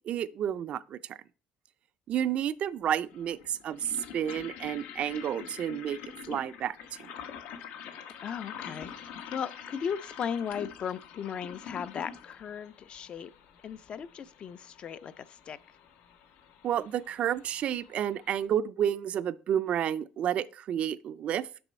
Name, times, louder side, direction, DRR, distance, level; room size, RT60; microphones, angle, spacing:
voice 1, 0.1-1.2 2.1-6.0 6.3-7.1 16.6-21.5, right 10 dB, 45° right, 0.3 m, -31 dB
sound 1, 2.1-2.2 3.1-18.5, left 8 dB, 85° left, 0.9 m, -46 dB
voice 2, 8.2-8.9 9.3-13.3 13.6-15.6, left 7 dB, 40° left, 0.3 m, -36 dB
6.9 x 5.3 x 4.2 m
cardioid pair, 145°, 3 cm